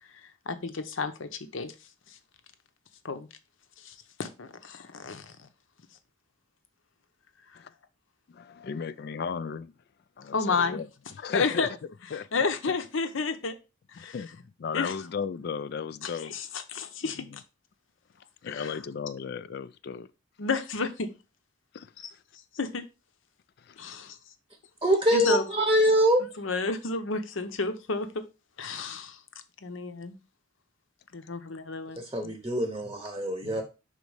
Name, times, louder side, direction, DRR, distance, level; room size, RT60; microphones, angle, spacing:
voice 1, 0.1-1.7 2.1-2.2 3.0-3.3 3.8-5.5 10.3-10.8 11.3-11.7 12.1-13.6 13.9-14.2 14.7-14.9 16.0-17.4 18.5-18.8 20.4-21.1 22.5-22.9 23.8-24.2 25.1-25.4 26.4-28.2 28.6-29.2 29.6-30.2 31.1-32.3, left 4 dB, 70° left, 0.8 m, -31 dB
voice 2, 8.3-9.7 10.2-10.9 11.2-11.7 12.1-12.5 14.0-16.3 17.0-17.2 18.4-20.1 21.7-21.9 23.6-24.0 33.4-33.5, left 6 dB, 50° left, 0.3 m, -35 dB
voice 3, 24.8-26.3 32.0-33.6, equal, 20° right, 0.8 m, -24 dB
5.3 x 4.0 x 4.8 m
head